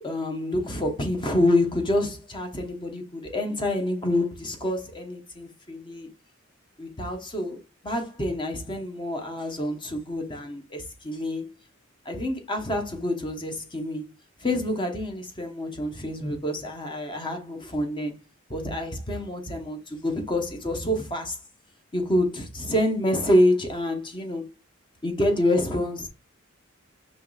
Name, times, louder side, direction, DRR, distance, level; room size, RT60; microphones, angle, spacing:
voice 1, 0.0-6.1 6.8-11.5 12.0-14.1 14.4-18.1 18.5-21.4 21.9-24.5 25.0-26.1, left 1 dB, 25° left, 0.8 m, -27 dB
5.4 x 3.1 x 2.3 m
head